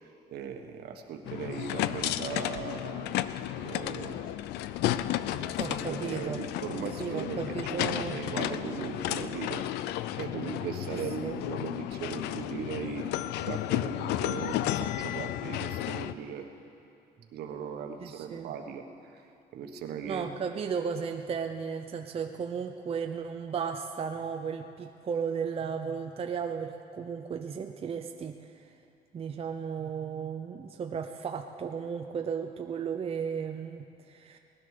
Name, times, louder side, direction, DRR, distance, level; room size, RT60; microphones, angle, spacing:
voice 1, 0.0-3.2 3.6-4.3 4.9-9.6 10.1-13.1 13.4-16.5 17.3-19.2 19.5-20.2, right 7 dB, 70° right, 5 dB, 1.4 m, -39 dB
sound 1, 1.2-16.1, left 13 dB, 85° left, 0.5 m, -33 dB
voice 2, 5.6-6.4 7.0-8.2 10.9-11.4 18.0-18.5 20.1-28.4 29.1-34.4, right 6 dB, 35° right, 5 dB, 0.7 m, -35 dB
18.5 x 11.0 x 6.7 m, 2.6 s
cardioid pair, 110°, 17 cm